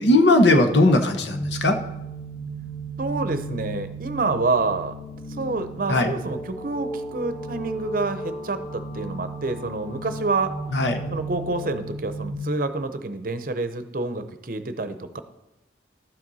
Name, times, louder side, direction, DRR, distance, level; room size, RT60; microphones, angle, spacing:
voice 1, 0.0-1.8 5.9-6.1 10.7-11.0, left 1 dB, 70° left, 6 dB, 1.1 m, -18 dB
sound 1, 1.3-12.3, right 2 dB, 45° left, 2.2 m, -34 dB
voice 2, 3.0-4.9 5.3-10.5 11.1-15.2, right 3 dB, 50° right, 10 dB, 0.7 m, -28 dB
12.0 x 7.6 x 4.1 m, 0.96 s
head